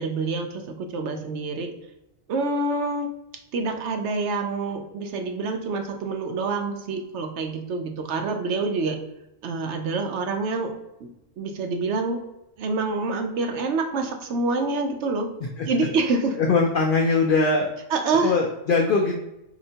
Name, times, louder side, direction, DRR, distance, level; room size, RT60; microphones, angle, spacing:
voice 1, 0.0-1.7 2.3-3.1 3.5-9.0 9.4-10.7 11.0-11.1 11.4-12.2 12.6-15.3 15.7-16.4 17.9-18.3, right 3 dB, 65° right, 5 dB, 0.8 m, -26 dB
voice 2, 16.4-17.7 18.2-19.2, left 4 dB, 65° left, 1 dB, 0.5 m, -21 dB
4.3 x 2.8 x 2.7 m, 0.89 s
omnidirectional pair, 1.3 m